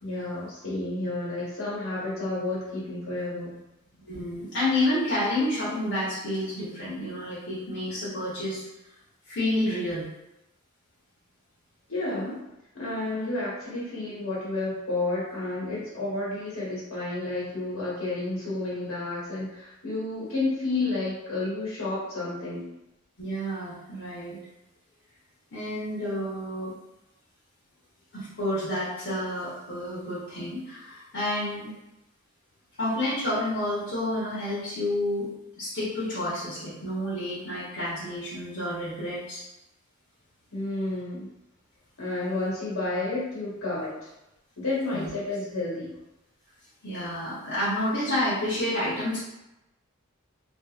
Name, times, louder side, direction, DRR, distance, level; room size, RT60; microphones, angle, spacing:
voice 1, 0.0-3.6 11.9-12.4 12.7-22.7 40.5-41.3 42.0-44.1 44.6-46.0, left 2 dB, 85° left, -7 dB, 1.3 m, -31 dB
voice 2, 4.1-8.6 9.3-10.1 23.2-24.4 25.5-26.7 28.1-31.8 32.8-35.3 35.6-39.4 44.9-45.1 46.8-49.2, left 1 dB, 60° left, -9 dB, 1.0 m, -29 dB
2.7 x 2.6 x 2.4 m, 0.92 s
head